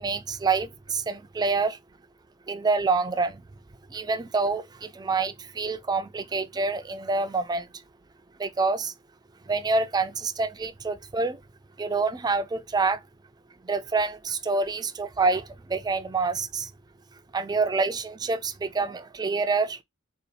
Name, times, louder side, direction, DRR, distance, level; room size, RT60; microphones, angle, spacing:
voice 1, 0.0-1.8 2.5-3.4 3.9-7.7 8.4-8.9 9.5-11.4 11.8-13.0 13.6-16.7 17.3-19.8, right 4 dB, 20° right, 0.4 m, -27 dB
3.9 x 2.4 x 4.3 m
head